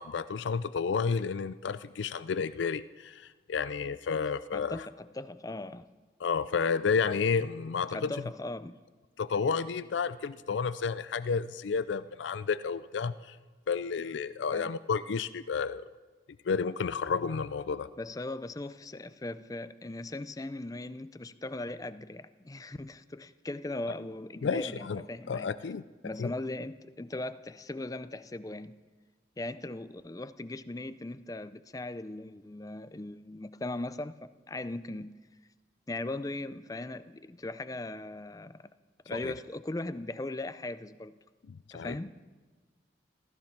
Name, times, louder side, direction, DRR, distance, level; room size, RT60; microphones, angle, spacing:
voice 1, 0.0-4.9 6.2-8.1 9.2-13.4 13.7-15.8 16.4-17.9 24.4-25.8 26.2-26.3 39.2-39.3 41.5-42.0, left 5 dB, 85° left, 0.4 m, -31 dB
voice 2, 4.5-5.9 7.9-8.8 14.5-14.7 18.0-25.5 26.0-28.8 29.4-35.1 35.9-38.7 39.1-41.2 41.7-42.2, left 2 dB, 20° left, 0.5 m, -39 dB
15.5 x 15.0 x 5.9 m
head